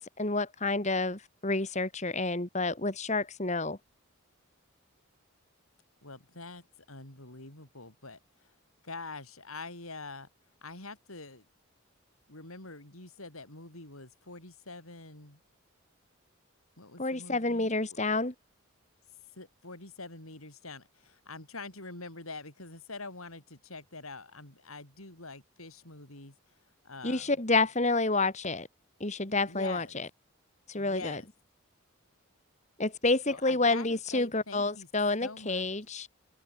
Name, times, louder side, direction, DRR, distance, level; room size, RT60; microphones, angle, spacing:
voice 1, 0.0-3.8 17.0-18.3 27.0-28.7 29.0-29.8 30.7-31.2 32.8-36.1, left 3 dB, 35° left, 2.2 m, -29 dB
voice 2, 6.0-8.5 8.8-10.3 10.6-11.5 12.3-15.4 16.8-18.0 19.3-26.6 26.8-27.4 29.5-30.0 30.8-31.3 33.3-34.9 35.2-35.7, left 3 dB, 85° left, 7.6 m, -45 dB
open air
head